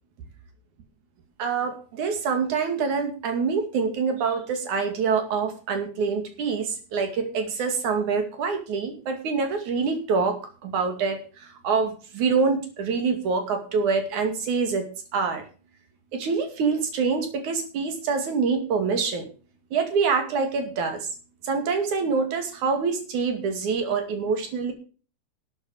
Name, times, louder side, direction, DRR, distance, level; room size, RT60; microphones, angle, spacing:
voice 1, 1.4-14.9 15.1-15.4 16.1-19.3 19.7-21.1 21.4-24.7, right 5 dB, 90° right, 6 dB, 3.8 m, -25 dB
12.5 x 8.5 x 6.4 m, 0.38 s
omnidirectional pair, 3.3 m